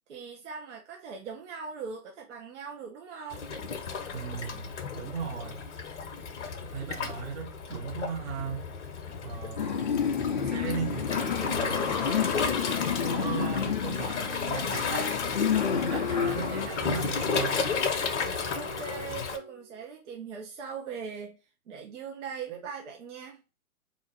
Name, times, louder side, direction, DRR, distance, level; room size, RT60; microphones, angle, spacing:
voice 1, 0.1-3.4 18.5-21.4 21.7-23.4, right 5 dB, 55° right, 0.8 m, -40 dB
Waves surf, 3.3-19.4, left 5 dB, 55° left, 0.7 m, -33 dB
voice 2, 4.1-5.7 6.6-8.6 9.2-9.9 10.4-12.3 12.8-15.3 15.6-17.6, right 6 dB, 15° right, 0.6 m, -37 dB
sound 1, 9.6-16.7, left 7 dB, 40° left, 0.4 m, -30 dB
Wind instrument woodwind instrument, 15.4-19.8, right 2 dB, 10° left, 0.9 m, -43 dB
3.7 x 2.5 x 3.3 m
figure-of-eight pair, 115°, 43 cm